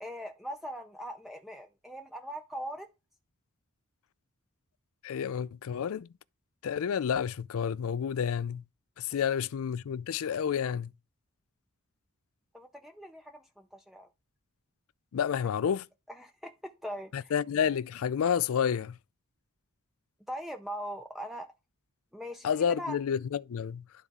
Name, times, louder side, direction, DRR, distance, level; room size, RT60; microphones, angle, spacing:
voice 1, 0.0-2.9 9.1-9.2 12.5-14.1 16.1-17.3 20.3-21.5 22.1-23.0, equal, ahead, 0.5 m, -41 dB
voice 2, 5.0-6.1 6.6-8.6 9.0-10.9 15.1-15.8 17.1-19.0 22.4-23.8, left 7 dB, 65° left, 0.4 m, -30 dB
11.5 x 4.0 x 3.6 m
head